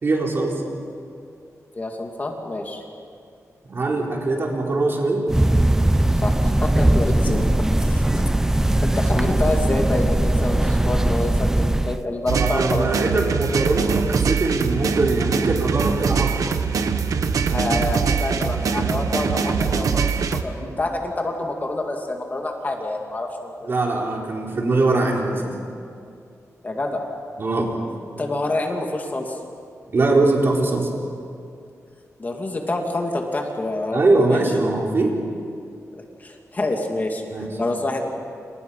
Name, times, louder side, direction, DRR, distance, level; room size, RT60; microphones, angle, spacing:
voice 1, 0.0-0.6 3.7-5.3 7.2-7.3 8.0-8.2 12.4-16.5 20.6-20.8 23.6-25.5 27.4-27.7 29.9-30.9 33.9-35.1 37.3-37.5, right 2 dB, 45° right, -1 dB, 4.3 m, -22 dB
voice 2, 1.8-2.8 6.2-7.4 7.8-8.1 8.5-12.9 17.5-23.7 26.6-27.0 28.2-29.4 32.2-34.4 35.9-37.2 37.6-38.0, left 2 dB, 30° left, 2 dB, 2.7 m, -27 dB
sound 1, 5.3-12.0, right 1 dB, 10° right, 0.8 m, -19 dB
sound 2, 12.3-20.4, right 5 dB, 85° right, 1.3 m, -22 dB
29.5 x 28.5 x 5.8 m, 2.4 s
wide cardioid pair, 150°, 6 cm